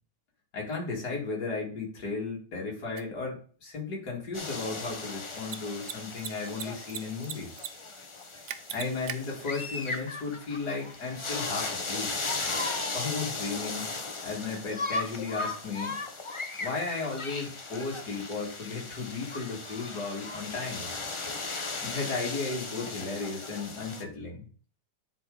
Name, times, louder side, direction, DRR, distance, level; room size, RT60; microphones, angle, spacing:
voice 1, 0.5-7.5 8.7-12.1 12.9-13.9 14.2-16.0 16.6-21.1 21.8-24.4, left 4 dB, 70° left, -3 dB, 2.7 m, -35 dB
Mechanisms, 3.0-3.1 5.4-5.6 5.8-5.9 6.2-7.0 7.2-7.7 7.9-8.0 8.5-9.2, right 10 dB, 60° right, 0.8 m, -36 dB
sound 1, 4.3-24.0, left 3 dB, 35° left, 0.4 m, -37 dB
10.0 x 4.5 x 3.9 m, 0.42 s
omnidirectional pair, 1.8 m